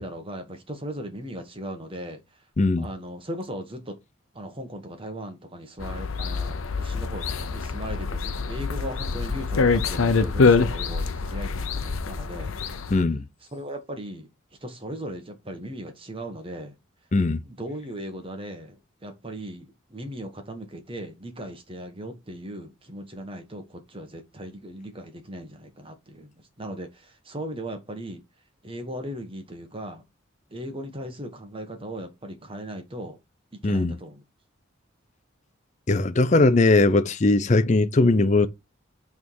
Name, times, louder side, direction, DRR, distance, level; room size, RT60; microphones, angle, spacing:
voice 1, 0.0-2.2 2.8-4.0 4.3-12.5 13.5-14.3 14.6-16.7 17.5-26.3 26.6-28.2 28.6-30.0 30.5-33.2 33.6-34.2, right 1 dB, 25° right, 1.3 m, -38 dB
sound 1, 5.8-13.0, left 4 dB, 85° left, 0.7 m, -25 dB
voice 2, 12.9-13.2 17.1-17.4 33.6-33.9 35.9-38.5, left 2 dB, 35° left, 0.5 m, -19 dB
6.3 x 3.6 x 4.7 m
head